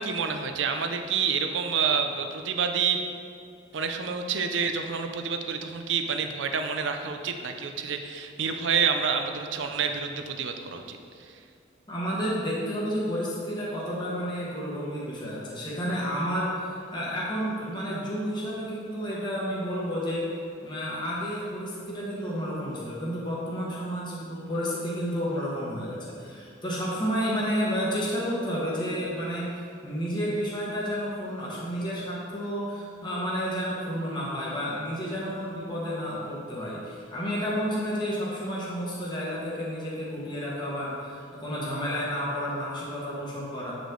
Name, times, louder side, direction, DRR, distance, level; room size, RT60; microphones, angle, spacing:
voice 1, 0.0-3.0 3.7-11.4, right 6 dB, 75° right, 6 dB, 0.6 m, -28 dB
voice 2, 11.9-20.3 20.6-29.5 29.8-43.8, equal, 25° left, -6 dB, 1.3 m, -31 dB
8.1 x 5.0 x 3.9 m, 2.4 s
head